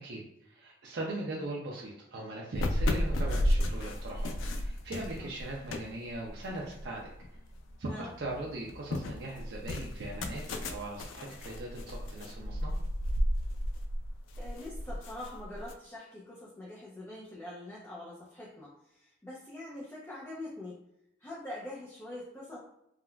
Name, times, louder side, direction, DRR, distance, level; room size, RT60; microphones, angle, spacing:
voice 1, 0.0-7.1 7.8-12.7, right 2 dB, 65° right, -3 dB, 0.4 m, -40 dB
sound 1, 2.6-7.7 8.1-15.7, equal, 90° left, 0.3 m, -33 dB
voice 2, 14.4-20.8 21.2-22.6, left 1 dB, 10° left, -6 dB, 0.5 m, -44 dB
3.6 x 2.2 x 2.2 m, 0.79 s
head